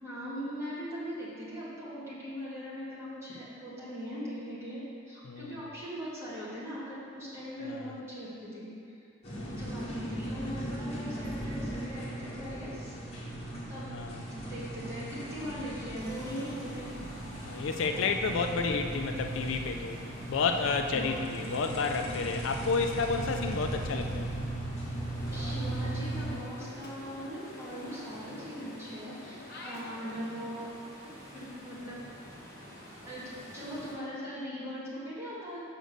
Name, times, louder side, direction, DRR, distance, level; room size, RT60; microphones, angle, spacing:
voice 1, 0.0-9.0 9.5-13.0 13.7-13.9 14.3-17.1 18.3-18.5 20.9-21.2 25.3-30.7 31.3-32.0 33.1-35.6, equal, 15° right, -10 dB, 2.0 m, -40 dB
sound 1, 9.2-26.3, right 1 dB, 30° left, 1.6 m, -37 dB
voice 2, 13.9-14.2 17.5-20.0 20.3-24.3, left 4 dB, 65° left, 5 dB, 0.4 m, -31 dB
sound 2, 16.0-34.0, equal, 15° left, 1.3 m, -50 dB
sound 3, 25.2-30.7, left 2 dB, 50° left, 0.9 m, -48 dB
6.3 x 5.1 x 6.5 m, 2.4 s
head